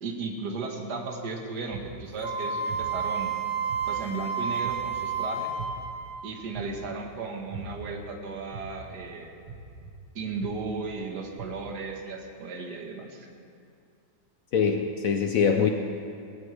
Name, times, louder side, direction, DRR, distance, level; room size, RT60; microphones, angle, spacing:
voice 1, 0.0-3.3 3.9-5.5 6.2-9.3 10.2-13.3, right 4 dB, 50° right, 1 dB, 1.9 m, -35 dB
sound 1, 1.7-2.1 2.7-3.1 3.7-4.1 4.6-5.1 5.6-6.0 6.5-7.0 7.5-7.9 8.5-8.9 9.5-9.9 10.4-10.8 11.4-11.5, right 6 dB, 90° right, 2.2 m, -40 dB
Wind instrument woodwind instrument, 2.2-6.4, right 5 dB, 10° right, 0.4 m, -31 dB
voice 2, 14.5-15.7, left 6 dB, 85° left, 4 dB, 0.7 m, -23 dB
20.0 x 16.5 x 3.4 m, 2.5 s
omnidirectional pair, 2.3 m